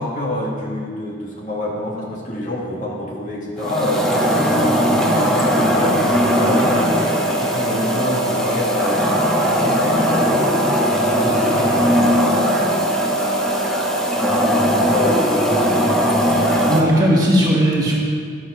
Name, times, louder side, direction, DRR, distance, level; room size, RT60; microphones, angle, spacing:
voice 1, 0.0-10.7 10.9-12.0 14.7-15.2 16.6-17.2, left 1 dB, 45° left, -4 dB, 2.0 m, -27 dB
sound 1, 3.6-16.8, equal, 5° left, 0.9 m, -18 dB
voice 2, 16.5-17.9, equal, 20° right, -5 dB, 1.9 m, -17 dB
12.0 x 7.5 x 5.7 m, 2.1 s
head